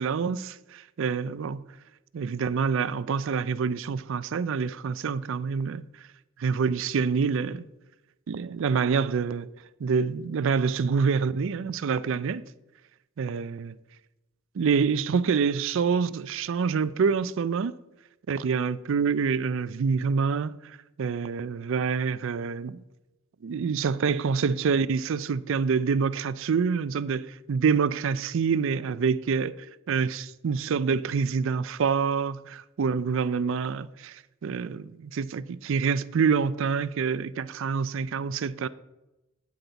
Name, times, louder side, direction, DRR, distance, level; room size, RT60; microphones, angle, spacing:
voice 1, 0.0-1.6 2.1-5.8 6.4-7.7 8.3-9.5 9.8-12.4 13.2-13.7 14.6-17.8 18.3-20.6 21.0-22.8 23.4-29.6 29.9-38.7, right 5 dB, 65° right, 0.4 m, -26 dB
8.6 x 7.8 x 4.0 m
head